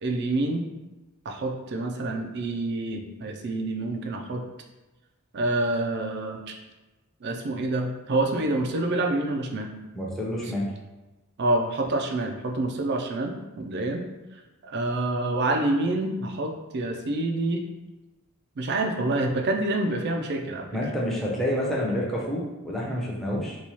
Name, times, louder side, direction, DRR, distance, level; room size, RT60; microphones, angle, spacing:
voice 1, 0.0-0.6 1.3-4.4 5.3-6.6 7.2-9.7 11.4-14.0 14.3-17.6 18.6-20.7, right 2 dB, 50° right, 3 dB, 0.4 m, -27 dB
voice 2, 9.9-10.7 20.7-23.6, equal, ahead, -5 dB, 0.6 m, -28 dB
3.0 x 2.3 x 4.1 m, 1.1 s
head